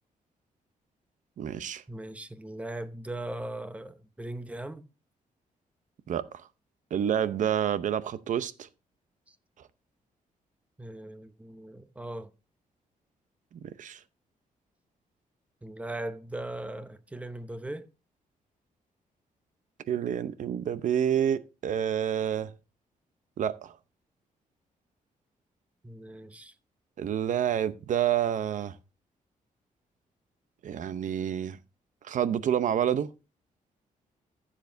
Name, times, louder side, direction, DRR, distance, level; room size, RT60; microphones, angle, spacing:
voice 1, 1.4-1.8 6.1-6.4 6.9-8.7 13.6-14.0 19.9-22.5 23.4-23.8 27.0-28.7 30.6-31.6 32.0-33.1, right 9 dB, 60° right, 0.7 m, -28 dB
voice 2, 1.9-4.8 10.8-12.3 15.6-17.9 25.8-26.5, right 1 dB, 10° right, 0.8 m, -39 dB
15.0 x 7.4 x 2.6 m
wide cardioid pair, 140°, 14 cm